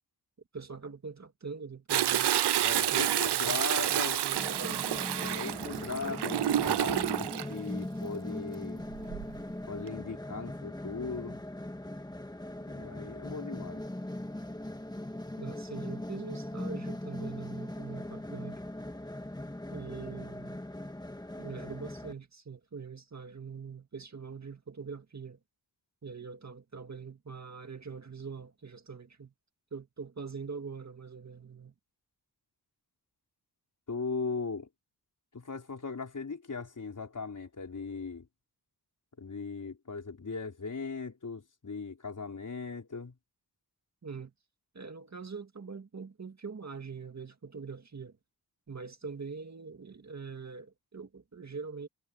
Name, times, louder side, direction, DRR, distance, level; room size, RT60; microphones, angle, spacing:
voice 1, 0.5-2.3 2.9-3.6 3.9-4.9 15.4-18.6 19.7-20.7 21.4-25.4 26.0-29.3 29.7-31.7 44.0-44.3 44.7-48.1 48.7-51.9, right 5 dB, 45° right, 2.0 m, -43 dB
Toilet flush, 1.9-7.5 8.9-9.4 9.9-10.0, right 11 dB, 85° right, 0.6 m, -29 dB
voice 2, 2.6-4.2 5.2-8.8 9.7-11.4 12.7-13.9 33.9-34.7 35.3-38.3 39.2-43.2, left 4 dB, 50° left, 5.2 m, -38 dB
sound 1, 4.3-22.1, left 1 dB, 10° left, 1.7 m, -40 dB
wide cardioid pair, 115°, 40 cm